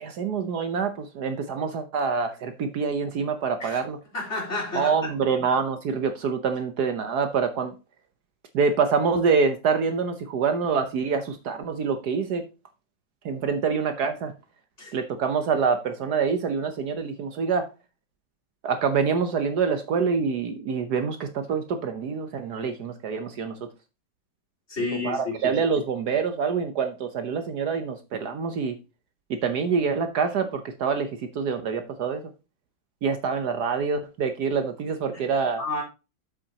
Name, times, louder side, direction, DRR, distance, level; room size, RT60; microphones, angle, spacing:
voice 1, 0.0-4.0 4.7-7.7 8.5-12.4 13.2-14.3 14.9-17.7 18.6-23.6 25.0-28.8 29.3-32.2 33.0-35.6, right 5 dB, 65° right, 1.3 m, -26 dB
voice 2, 4.1-5.1 14.8-15.0 24.7-25.5 35.1-35.2 35.6-35.8, left 3 dB, 40° left, 3.9 m, -31 dB
8.5 x 7.7 x 2.8 m
omnidirectional pair, 2.0 m